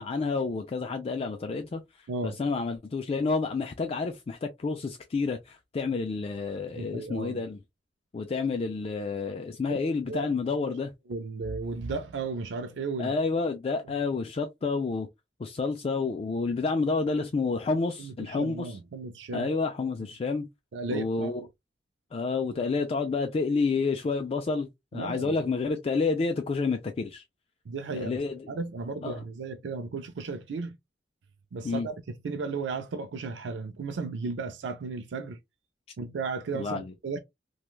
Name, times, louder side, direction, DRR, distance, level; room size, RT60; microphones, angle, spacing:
voice 1, 0.0-1.8 2.2-7.6 8.1-10.9 13.0-15.1 15.4-18.8 19.3-20.5 20.9-21.4 22.1-27.2 27.9-28.5 29.0-29.2 31.6-31.9 36.5-36.9, left 4 dB, 35° left, 0.3 m, -29 dB
voice 2, 6.7-7.4 10.1-10.2 11.1-13.1 18.0-19.5 20.7-21.3 24.9-25.4 27.7-28.2 28.5-30.8 31.5-32.0 32.2-35.4 36.0-37.2, right 4 dB, 85° right, 0.4 m, -34 dB
3.1 x 2.2 x 2.3 m
head